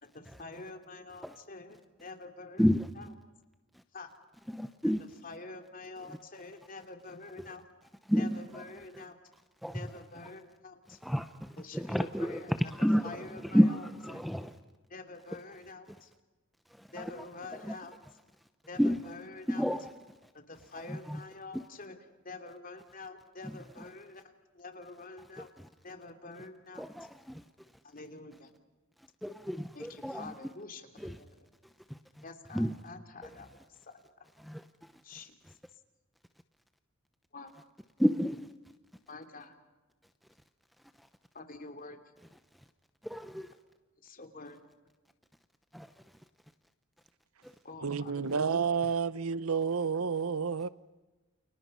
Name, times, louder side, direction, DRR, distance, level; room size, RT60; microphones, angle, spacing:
voice 1, 0.0-2.7 3.0-3.1 3.9-4.1 5.2-7.6 8.2-9.2 9.7-11.0 11.6-12.7 13.0-14.2 14.9-16.1 16.9-18.0 18.7-19.7 20.3-22.0 22.2-25.5 25.8-26.8 27.8-28.5 29.7-31.3 32.2-33.9 35.0-35.4 37.3-37.5 39.1-39.5 41.3-42.0 44.0-44.6 47.6-48.4, left 3 dB, 40° left, 2.8 m, -47 dB
voice 2, 4.5-5.0 8.1-8.6 8.9-9.0 9.6-9.8 11.0-14.5 16.8-17.1 17.6-17.8 18.8-19.0 19.5-19.9 20.9-21.2 21.5-21.6 23.4-23.5 25.4-25.7 26.8-27.4 29.2-30.3 31.0-31.2 31.9-32.0 32.5-32.7 34.4-34.6 38.0-38.5 43.0-43.5 45.7-45.9 47.4-47.5, equal, ahead, 0.8 m, -30 dB
voice 3, 47.8-50.7, right 6 dB, 80° right, 0.8 m, -30 dB
29.5 x 29.5 x 5.6 m
head